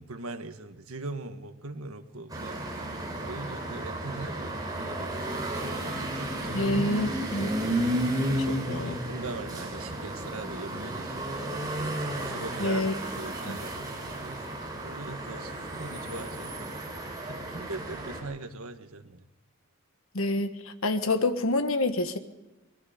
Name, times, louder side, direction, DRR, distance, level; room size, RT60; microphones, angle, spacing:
voice 1, 0.0-2.6 3.2-7.0 7.6-17.0 17.2-19.2, right 3 dB, 80° right, 1.6 m, -41 dB
sound 1, 2.3-18.2, right 1 dB, 20° right, 4.6 m, -33 dB
voice 2, 6.5-7.5 8.7-8.9 12.6-12.9 13.5-13.6 20.1-22.2, left 2 dB, 70° left, 1.4 m, -27 dB
24.0 x 21.5 x 5.2 m
head